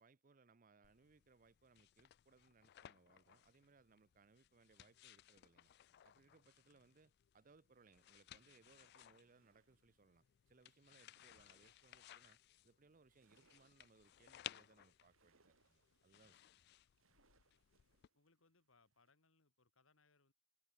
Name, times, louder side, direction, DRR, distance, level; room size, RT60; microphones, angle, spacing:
voice 1, 0.0-5.7 6.0-12.4 12.6-16.4, right 4 dB, 40° right, 0.6 m, -70 dB
sound 1, 0.8-18.1, left 12 dB, 55° left, 0.3 m, -61 dB
sound 2, 7.7-19.1, right 4 dB, 80° right, 2.3 m, -81 dB
voice 2, 18.1-20.3, left 3 dB, 75° left, 2.4 m, -75 dB
head